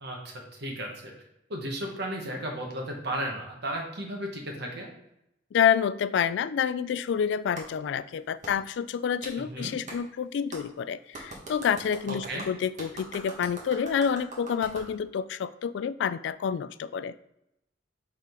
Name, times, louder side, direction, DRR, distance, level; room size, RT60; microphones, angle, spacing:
voice 1, 0.0-1.1 1.5-4.9 9.4-9.7 12.1-12.5, right 1 dB, 60° right, 1 dB, 1.3 m, -34 dB
voice 2, 5.5-17.1, left 7 dB, 70° left, 16 dB, 0.3 m, -28 dB
Clapping, 7.6-7.7 8.4-8.5 9.2-9.4 9.9-10.0 10.5-10.6 11.1-14.9, right 2 dB, 45° right, 1.5 m, -42 dB
5.8 x 3.7 x 4.5 m, 0.84 s
head